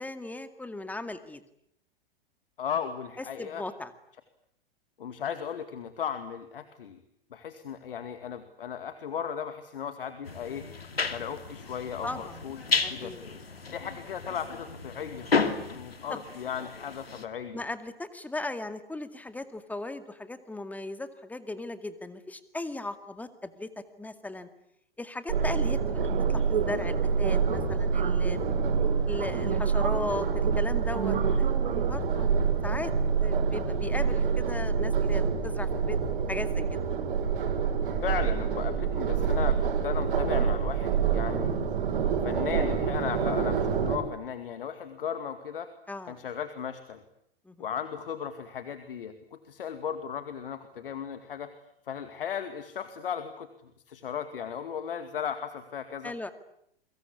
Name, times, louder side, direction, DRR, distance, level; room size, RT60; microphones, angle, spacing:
voice 1, 0.0-1.4 3.4-3.9 12.0-12.4 12.8-13.2 16.1-16.2 17.5-23.7 24.0-24.5 25.0-28.6 29.1-31.5 31.9-32.4 32.6-32.9 33.2-36.0 36.3-36.6 42.2-42.3 45.9-46.2 47.5-47.6 56.0-56.3, left 2 dB, 5° left, 10 dB, 2.2 m, -37 dB
voice 2, 2.6-3.6 5.0-7.0 7.3-10.6 11.1-13.1 13.7-15.3 15.7-17.6 38.0-41.6 42.2-45.7 46.0-47.0 47.6-49.1 49.5-51.5 51.9-53.5 53.9-56.1, left 8 dB, 65° left, 9 dB, 2.3 m, -36 dB
sound 1, 10.3-17.3, left 4 dB, 80° left, 2.6 m, -33 dB
sound 2, 25.3-44.0, right 6 dB, 60° right, 6.2 m, -27 dB
29.0 x 24.0 x 8.5 m, 0.74 s
figure-of-eight pair, 100°, 30 cm